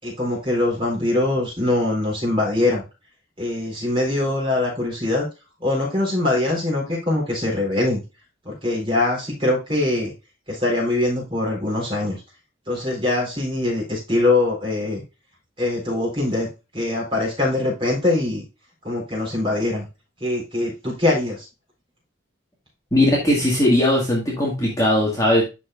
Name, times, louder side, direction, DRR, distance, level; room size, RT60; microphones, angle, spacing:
voice 1, 0.0-2.8 3.4-5.3 5.6-8.0 8.4-10.1 10.5-12.2 12.7-15.0 15.6-16.5 16.7-18.4 18.8-19.9 20.2-21.5, left 2 dB, 25° right, -2 dB, 3.9 m, -22 dB
voice 2, 22.9-25.4, left 1 dB, 15° left, -4 dB, 1.8 m, -19 dB
11.0 x 4.6 x 2.4 m, 0.27 s
head